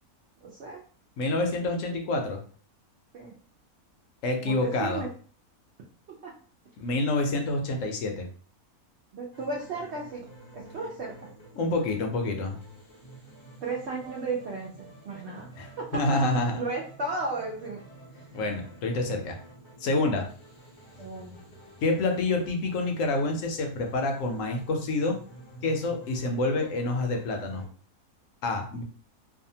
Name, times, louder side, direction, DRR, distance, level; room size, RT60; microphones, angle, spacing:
voice 1, 0.4-0.8 3.1-3.3 4.4-5.1 6.2-6.3 9.1-10.3 10.5-11.3 13.6-15.5 15.8-16.2 16.6-17.8 20.1-20.2 21.0-21.4, right 3 dB, 60° right, -2 dB, 0.7 m, -34 dB
voice 2, 1.2-2.4 4.2-5.0 6.8-8.3 11.6-12.6 15.6-16.6 18.3-19.4 19.8-20.3 21.8-25.1 25.6-27.6 28.4-28.8, left 2 dB, 70° left, 3 dB, 0.9 m, -27 dB
sound 1, 9.3-27.7, right 1 dB, 40° left, 0.4 m, -50 dB
2.6 x 2.2 x 2.7 m, 0.43 s
omnidirectional pair, 1.5 m